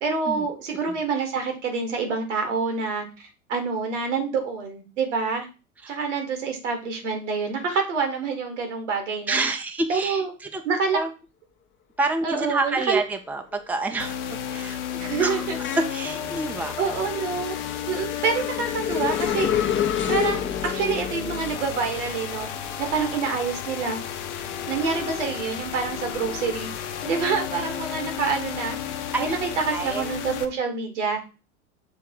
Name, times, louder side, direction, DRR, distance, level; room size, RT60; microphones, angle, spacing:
voice 1, 0.0-5.5 5.9-9.4 9.9-10.3 10.6-11.0 12.2-13.0 15.0-15.6 16.8-17.5 17.9-19.5 20.1-22.5 22.8-24.0 24.7-26.7 27.1-28.8 29.2-31.3, right 5 dB, 75° right, 4 dB, 1.9 m, -27 dB
voice 2, 9.3-10.6 10.9-11.1 12.0-14.8 15.2-15.5 15.9-16.8 29.1-29.4 29.7-30.1, right 3 dB, 5° right, 5 dB, 0.7 m, -28 dB
sound 1, 12.7-13.1 13.5-24.8 25.2-26.9, left 9 dB, 30° left, 1.0 m, -31 dB
sound 2, 14.0-30.4, left 9 dB, 65° left, 0.9 m, -33 dB
6.8 x 3.4 x 4.8 m, 0.32 s
figure-of-eight pair, 80°, 37 cm